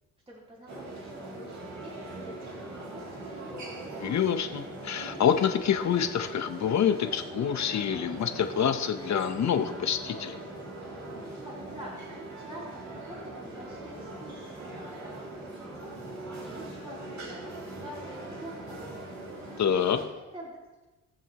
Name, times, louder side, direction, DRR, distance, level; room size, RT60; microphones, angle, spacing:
voice 1, 0.3-4.0 11.3-15.9 16.4-19.3 19.9-20.9, equal, 15° right, -6 dB, 3.5 m, -47 dB
sound 1, 0.7-20.1, right 2 dB, 55° right, 3.0 m, -41 dB
voice 2, 4.0-10.4 19.6-20.0, left 8 dB, 55° left, 8 dB, 1.0 m, -27 dB
21.0 x 7.0 x 3.0 m, 1.1 s
cardioid pair, 100°, 33 cm